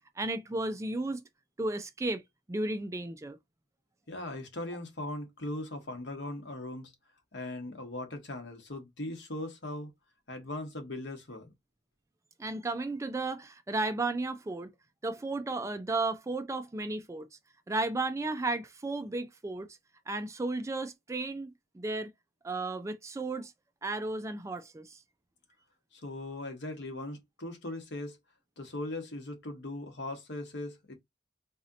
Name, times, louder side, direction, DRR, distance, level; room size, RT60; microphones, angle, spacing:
voice 1, 0.2-1.2 1.6-2.2 2.5-3.4 12.4-14.7 15.0-17.3 17.7-19.8 20.1-22.1 22.4-23.5 23.8-25.0, right 2 dB, 15° right, 0.3 m, -34 dB
voice 2, 4.1-6.9 7.3-9.9 10.3-11.5 25.9-28.2 28.6-30.9, left 1 dB, 65° left, 1.1 m, -39 dB
4.1 x 2.7 x 2.4 m
head